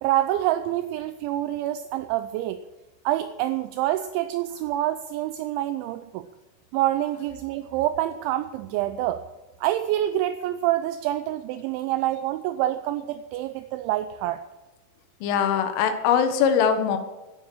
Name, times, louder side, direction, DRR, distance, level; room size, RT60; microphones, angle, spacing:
voice 1, 0.0-2.6 3.1-6.3 6.7-9.2 9.6-14.4, right 13 dB, 80° right, 11 dB, 2.8 m, -26 dB
voice 2, 15.2-17.0, left 7 dB, 85° left, 7 dB, 3.8 m, -21 dB
12.5 x 10.5 x 7.5 m, 1.1 s
omnidirectional pair, 5.6 m